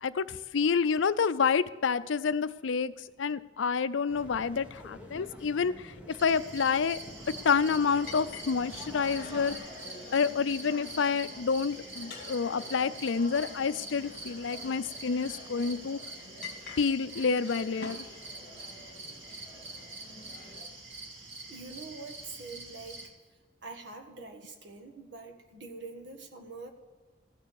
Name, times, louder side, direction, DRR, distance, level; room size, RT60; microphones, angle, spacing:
voice 1, 0.0-2.9 3.2-7.0 7.3-9.6 10.1-16.0 16.8-18.0, left 5 dB, 80° left, 14 dB, 0.5 m, -28 dB
sound 1, 4.1-9.6, equal, 5° right, 1.6 m, -48 dB
sound 2, 6.2-23.1, right 2 dB, 85° right, 2.3 m, -45 dB
sound 3, 7.5-20.6, left 2 dB, 45° left, 2.0 m, -48 dB
voice 2, 21.5-23.1 23.6-26.7, right 3 dB, 70° right, 4 dB, 1.6 m, -45 dB
15.0 x 6.7 x 7.1 m, 1.3 s
head